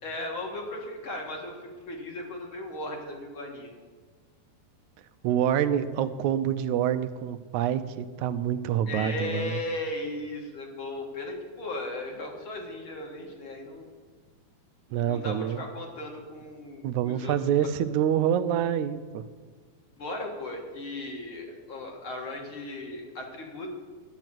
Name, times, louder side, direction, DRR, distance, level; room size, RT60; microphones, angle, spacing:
voice 1, 0.0-3.7 8.9-13.9 15.1-17.4 19.9-23.7, left 2 dB, 50° left, 1 dB, 2.3 m, -36 dB
voice 2, 5.2-9.6 14.9-15.6 16.8-19.2, right 9 dB, 90° right, 10 dB, 2.0 m, -26 dB
11.0 x 9.2 x 7.5 m, 1.5 s
omnidirectional pair, 3.4 m